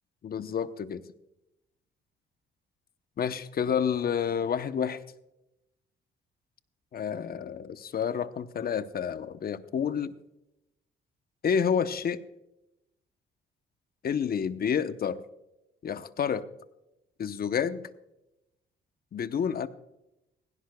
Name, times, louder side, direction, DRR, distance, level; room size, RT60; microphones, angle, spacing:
voice 1, 0.2-1.0 3.2-5.0 6.9-10.1 11.4-12.2 14.0-15.2 15.8-16.4 17.2-17.8 19.1-19.7, left 7 dB, 50° left, 13 dB, 0.8 m, -29 dB
17.0 x 16.5 x 2.3 m, 0.88 s
cardioid pair, 90°, 20 cm